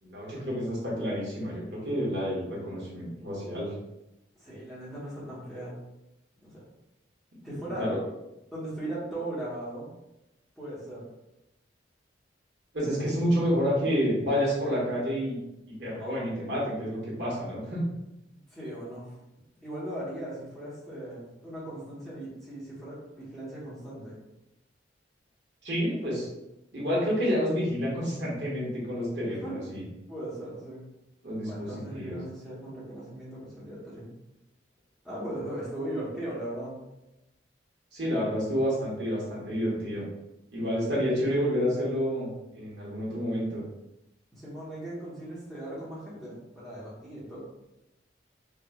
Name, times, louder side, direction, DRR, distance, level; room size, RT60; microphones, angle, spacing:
voice 1, 0.0-3.7 7.8-8.0 12.7-15.4 15.8-17.8 25.6-26.3 26.7-29.8 31.2-32.2 37.9-40.0 40.5-43.6, equal, 65° right, -5 dB, 1.3 m, -29 dB
voice 2, 4.4-5.8 6.4-6.6 7.4-7.9 8.5-9.9 10.6-11.1 18.5-19.1 19.6-24.2 29.4-29.7 30.1-30.9 31.5-34.1 35.0-36.8 44.3-47.4, right 1 dB, ahead, -10 dB, 1.0 m, -38 dB
4.5 x 2.4 x 2.3 m, 0.91 s
head